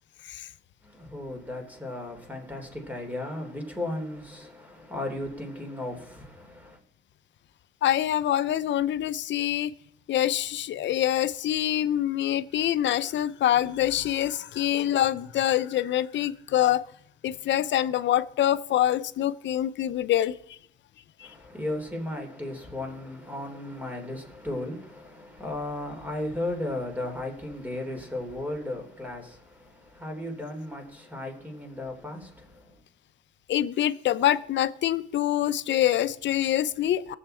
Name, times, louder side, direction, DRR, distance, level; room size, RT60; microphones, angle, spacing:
voice 1, 0.8-6.8 21.2-32.8, left 1 dB, 10° right, 3.3 m, -35 dB
voice 2, 7.8-9.7 10.1-16.8 17.2-20.6 21.2-21.3 33.5-37.1, left 12 dB, 65° left, 0.6 m, -25 dB
18.5 x 7.3 x 4.4 m
cardioid pair, 90°, 20 cm